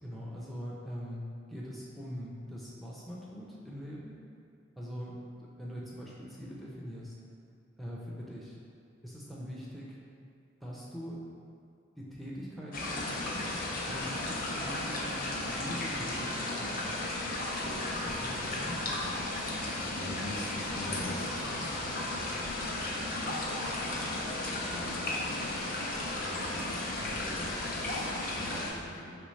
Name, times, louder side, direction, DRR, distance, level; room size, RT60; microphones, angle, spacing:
voice 1, 0.0-4.1 4.8-7.1 7.8-8.6 9.0-10.0 10.6-11.2 12.0-13.5 13.8-17.3 18.0-18.9, equal, ahead, -5 dB, 0.5 m, -42 dB
sound 1, 12.7-28.7, left 2 dB, 50° left, 0.6 m, -34 dB
voice 2, 19.5-25.5 26.2-29.2, equal, 75° left, -6 dB, 1.2 m, -45 dB
5.1 x 3.3 x 3.1 m, 2.5 s
head